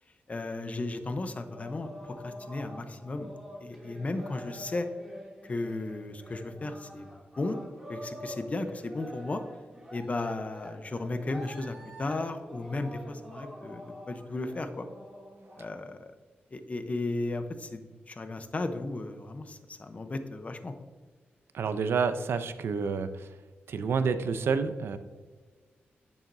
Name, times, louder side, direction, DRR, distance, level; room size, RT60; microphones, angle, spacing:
voice 1, 0.3-3.3 3.6-4.9 5.5-7.1 7.4-7.6 7.9-9.4 9.9-14.9 15.6-16.1 16.5-17.8 18.1-20.7, left 2 dB, 35° left, 8 dB, 0.8 m, -35 dB
sound 1, 1.4-15.7, equal, 5° right, 2.6 m, -46 dB
voice 2, 21.5-23.3 23.7-25.0, right 5 dB, 80° right, 10 dB, 0.6 m, -29 dB
10.5 x 7.2 x 2.7 m, 1.4 s
cardioid pair, 85°, 4 cm